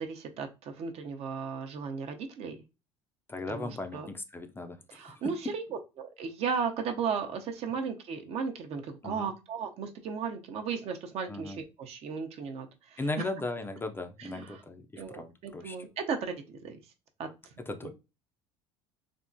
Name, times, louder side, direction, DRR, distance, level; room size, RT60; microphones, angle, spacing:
voice 1, 0.0-2.6 3.5-4.1 4.9-13.3 14.2-14.6 15.0-16.8 17.2-17.3 17.8-17.9, right 6 dB, 55° right, 0.7 m, -35 dB
voice 2, 3.3-4.8 5.0-5.3 9.0-9.3 11.3-11.6 13.0-15.8 17.6-17.9, left 2 dB, 15° left, 0.4 m, -37 dB
3.5 x 2.0 x 2.6 m
supercardioid pair, 85°, 13 cm